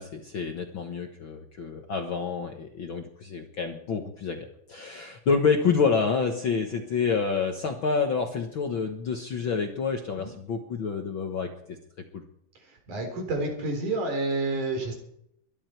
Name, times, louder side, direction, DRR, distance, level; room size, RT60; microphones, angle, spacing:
voice 1, 0.0-11.8 12.1-12.2, left 5 dB, 55° left, 4 dB, 1.5 m, -28 dB
voice 2, 12.6-14.9, right 2 dB, 70° right, 3 dB, 5.4 m, -29 dB
22.5 x 11.5 x 4.6 m, 0.74 s
omnidirectional pair, 3.6 m